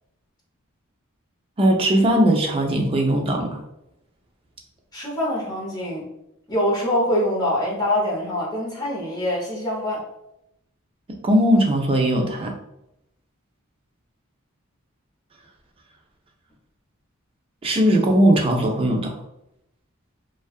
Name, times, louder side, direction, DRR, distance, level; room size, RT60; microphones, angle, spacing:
voice 1, 1.6-3.6 11.2-12.5 17.6-19.1, right 1 dB, 25° right, 1 dB, 0.4 m, -19 dB
voice 2, 4.9-6.1 6.5-10.0, left 1 dB, 20° left, -4 dB, 0.7 m, -24 dB
2.6 x 2.3 x 2.3 m, 0.84 s
head